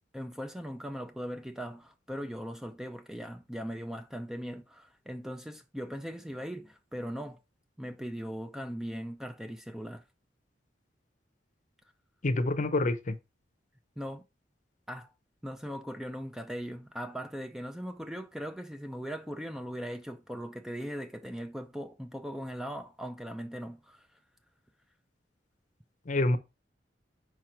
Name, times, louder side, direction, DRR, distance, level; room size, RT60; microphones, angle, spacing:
voice 1, 0.1-7.4 7.8-10.0 14.0-14.2 14.9-15.1 15.4-24.2, equal, 5° right, 0.4 m, -39 dB
voice 2, 12.2-13.2 26.1-26.4, left 2 dB, 45° left, 0.7 m, -27 dB
4.8 x 4.4 x 4.5 m
head